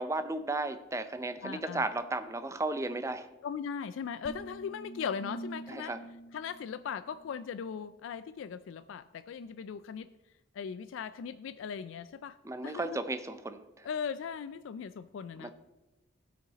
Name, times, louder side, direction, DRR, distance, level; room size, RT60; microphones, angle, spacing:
voice 1, 0.0-3.3 5.7-6.0 12.4-13.9 15.4-15.5, right 2 dB, 15° right, 10 dB, 0.5 m, -34 dB
voice 2, 1.4-1.9 3.4-5.9 6.3-10.1 10.5-12.4 12.6-13.0 13.8-15.5, left 7 dB, 85° left, 13 dB, 0.3 m, -39 dB
sound 1, 4.2-7.6, right 1 dB, 50° left, 0.7 m, -46 dB
16.5 x 6.4 x 4.1 m, 1.0 s
head